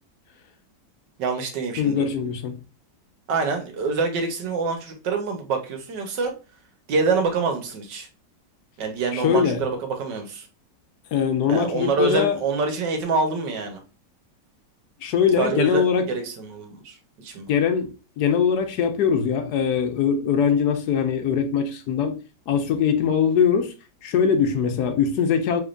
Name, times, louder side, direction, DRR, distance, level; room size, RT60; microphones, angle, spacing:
voice 1, 1.2-2.0 3.3-6.3 6.9-8.1 8.8-10.5 11.5-13.8 15.4-17.5, right 4 dB, 80° right, 1.6 m, -26 dB
voice 2, 1.8-2.6 9.1-9.6 11.1-12.4 15.0-16.1 17.5-22.2 22.5-23.7 24.0-25.6, left 7 dB, 70° left, 1.1 m, -22 dB
3.6 x 3.5 x 2.4 m
omnidirectional pair, 1.9 m